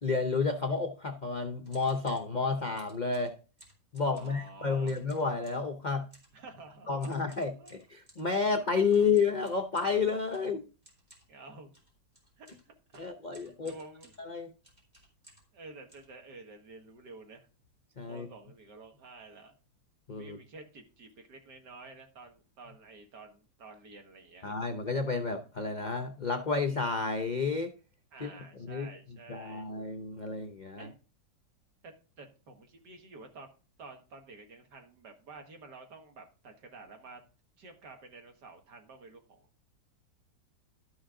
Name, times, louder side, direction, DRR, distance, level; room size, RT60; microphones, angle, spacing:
voice 1, 0.0-3.3 3.9-6.1 6.9-10.6 13.0-13.7 14.2-14.5 18.0-18.3 20.1-20.4 24.4-27.7 28.2-28.9 29.3-30.9, left 4 dB, 80° left, 7 dB, 0.4 m, -31 dB
sound 1, 1.6-2.3 2.8-4.5 4.8-5.7 6.1-6.4 7.0-8.3 8.9-15.6 15.9-16.7 17.2-17.3 17.5-17.8 18.1-18.3 18.8-18.9 19.2-19.5, right 1 dB, 20° right, 3.3 m, -60 dB
voice 2, 4.1-5.0 6.3-7.2 7.6-7.8 8.6-8.8 11.3-11.7 12.4-13.0 13.4-14.1 15.5-17.5 18.0-19.5 20.2-24.6 28.1-29.7 30.8-31.0 31.8-33.5 33.8-37.2 37.6-39.5, right 3 dB, 60° right, 4 dB, 2.2 m, -50 dB
12.0 x 6.3 x 3.8 m, 0.35 s
omnidirectional pair, 2.1 m